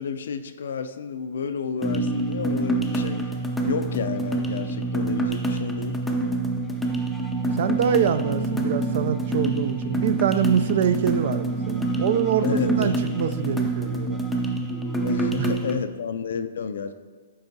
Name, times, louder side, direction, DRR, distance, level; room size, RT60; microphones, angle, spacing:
voice 1, 0.0-5.9 12.4-13.0 15.0-16.9, left 6 dB, 70° left, 9 dB, 0.4 m, -31 dB
sound 1, 1.8-15.8, right 2 dB, 5° left, 0.5 m, -26 dB
voice 2, 7.6-14.2 15.4-15.5, right 8 dB, 55° right, 11 dB, 0.4 m, -24 dB
9.5 x 3.8 x 2.7 m, 1.5 s
hypercardioid pair, 140°, 0 cm